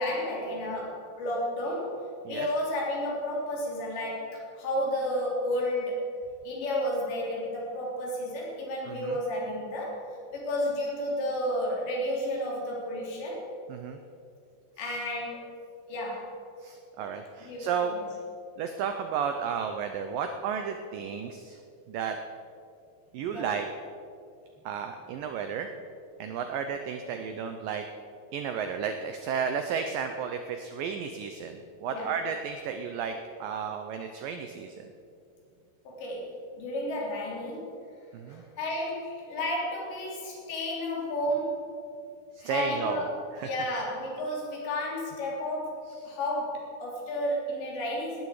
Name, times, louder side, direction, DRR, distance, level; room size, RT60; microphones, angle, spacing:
voice 1, 0.0-6.0 6.4-10.0 10.3-13.5 14.8-15.4 15.9-16.4 17.4-18.1 23.3-23.5 31.9-32.2 35.9-37.8 38.3-41.8 42.4-48.2, left 1 dB, 85° left, -3 dB, 5.6 m, -32 dB
voice 2, 8.9-9.2 13.7-14.0 16.6-17.9 18.6-21.6 21.9-22.2 23.1-23.7 24.7-25.7 26.2-27.9 28.3-33.2 33.4-34.9 38.1-38.4 42.4-43.0 43.4-43.5, right 7 dB, 85° right, 6 dB, 1.9 m, -33 dB
18.5 x 13.0 x 4.9 m, 2.5 s
omnidirectional pair, 4.9 m